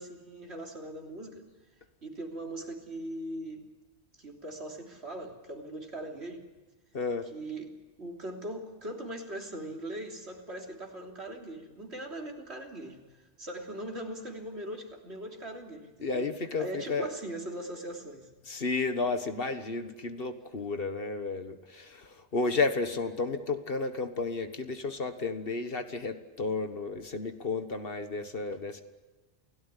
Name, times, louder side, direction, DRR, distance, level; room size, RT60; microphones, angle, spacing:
voice 1, 0.0-1.5 2.0-3.7 4.2-6.4 7.3-16.3 16.6-18.3, right 1 dB, 65° right, 1 dB, 3.5 m, -40 dB
voice 2, 6.9-7.3 16.0-17.1 18.4-28.8, left 3 dB, 55° left, 8 dB, 1.6 m, -32 dB
29.0 x 17.0 x 10.0 m, 1.2 s
omnidirectional pair, 1.2 m